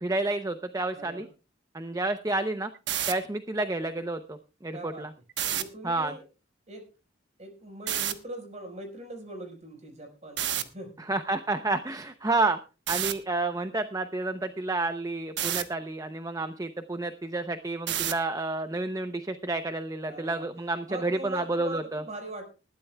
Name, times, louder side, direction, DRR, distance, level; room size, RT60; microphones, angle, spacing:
voice 1, 0.0-1.3 1.7-2.7 3.1-5.1 5.8-6.1 11.0-12.6 12.9-22.0, right 2 dB, 20° right, 9 dB, 0.7 m, -30 dB
voice 2, 0.9-1.3 4.7-5.1 5.4-6.2 6.7-6.9 7.4-11.1 20.1-20.5 20.9-22.5, right 1 dB, 40° right, 5 dB, 4.8 m, -41 dB
sound 1, 2.7-3.1 5.3-5.6 7.9-8.1 10.4-10.6 12.9-13.1 15.4-15.6 17.9-18.2, right 10 dB, 70° right, 1.2 m, -28 dB
20.0 x 13.5 x 2.3 m, 0.33 s
head